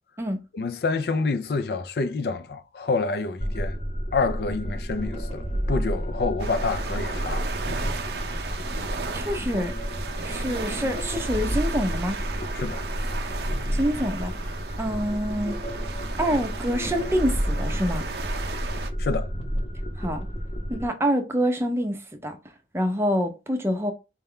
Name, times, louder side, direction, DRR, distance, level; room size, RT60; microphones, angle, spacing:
voice 1, 0.5-3.8 4.1-7.5 12.5-12.8 19.0-19.3, left 4 dB, 65° left, 0.4 m, -27 dB
sound 1, 3.4-20.9, equal, 35° left, 0.8 m, -30 dB
sound 2, 6.4-18.9, right 4 dB, 70° right, 0.6 m, -35 dB
voice 2, 9.1-9.7 10.2-12.2 13.7-14.3 14.8-15.6 16.2-18.0 20.0-20.2 20.7-22.0 22.2-22.4 22.7-23.9, equal, 15° right, 0.5 m, -26 dB
4.2 x 2.3 x 3.6 m
head